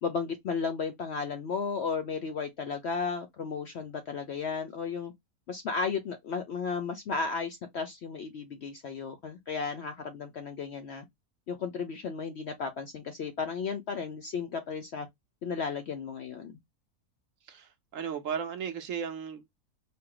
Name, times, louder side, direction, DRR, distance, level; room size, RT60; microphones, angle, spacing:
voice 1, 0.0-5.1 5.5-11.1 11.5-15.1 15.4-16.6, left 5 dB, 65° left, 0.7 m, -34 dB
voice 2, 17.4-19.5, right 7 dB, 65° right, 1.0 m, -35 dB
4.4 x 2.1 x 3.7 m
omnidirectional pair, 1.6 m